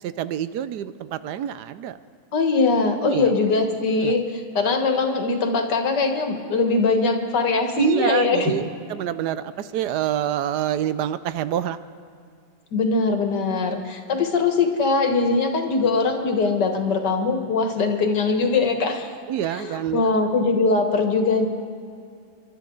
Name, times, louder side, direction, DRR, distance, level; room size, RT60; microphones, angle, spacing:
voice 1, 0.0-2.0 3.0-3.3 4.0-4.1 7.8-8.6 8.9-11.8 19.3-20.0, right 10 dB, 80° right, 13 dB, 1.2 m, -26 dB
voice 2, 2.3-4.2 4.6-8.5 12.7-19.1 19.5-21.5, left 4 dB, 85° left, 4 dB, 2.1 m, -21 dB
29.0 x 12.0 x 3.9 m, 2.3 s
omnidirectional pair, 1.8 m